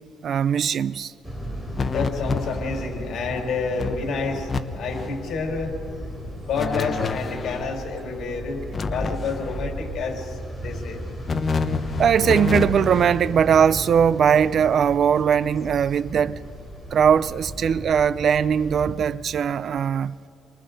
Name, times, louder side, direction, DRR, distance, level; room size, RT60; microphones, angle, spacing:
voice 1, 0.2-1.1 12.0-16.4 16.9-20.1, right 8 dB, 50° right, 0.4 m, -20 dB
sound 1, 1.2-19.0, equal, 5° left, 3.4 m, -36 dB
voice 2, 1.8-4.5 4.7-5.7 6.4-8.6 8.9-11.0, left 4 dB, 60° left, 5.1 m, -29 dB
sound 2, 1.8-3.0 3.4-3.5 3.8-4.6 4.9-5.2 6.6-7.7 8.7-9.7 11.3-13.2, left 4 dB, 35° left, 1.0 m, -28 dB
29.5 x 23.5 x 4.1 m
cardioid pair, 110°, 0 cm